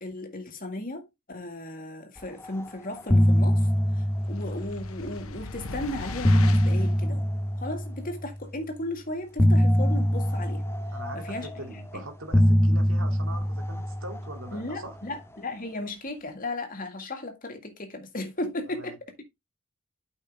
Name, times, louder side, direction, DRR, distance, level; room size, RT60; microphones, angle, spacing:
voice 1, 0.0-3.7 3.9-7.2 7.5-10.6 11.1-11.5 11.9-12.0 14.5-19.2, left 2 dB, 40° left, 2.0 m, -36 dB
sound 1, 2.4-2.7 2.9-5.3 5.9-8.4 9.4-11.8 12.3-14.9, equal, 10° left, 0.8 m, -24 dB
sound 2, 4.3-7.0, left 3 dB, 75° left, 1.0 m, -38 dB
voice 2, 10.9-14.9 18.8-18.9, right 1 dB, 65° right, 2.5 m, -42 dB
8.6 x 5.6 x 3.5 m
head